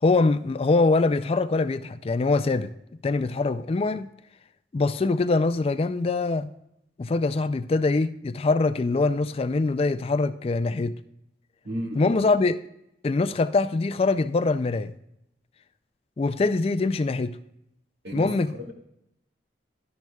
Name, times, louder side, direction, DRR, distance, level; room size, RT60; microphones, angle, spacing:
voice 1, 0.0-2.7 3.0-4.1 4.7-6.5 7.0-11.0 12.0-12.6 13.0-14.9 16.2-17.4 18.1-18.5, left 3 dB, 35° left, 13 dB, 0.3 m, -23 dB
voice 2, 11.6-12.2 18.0-18.7, right 1 dB, 70° right, 1 dB, 1.9 m, -34 dB
12.0 x 10.5 x 2.3 m, 0.82 s
head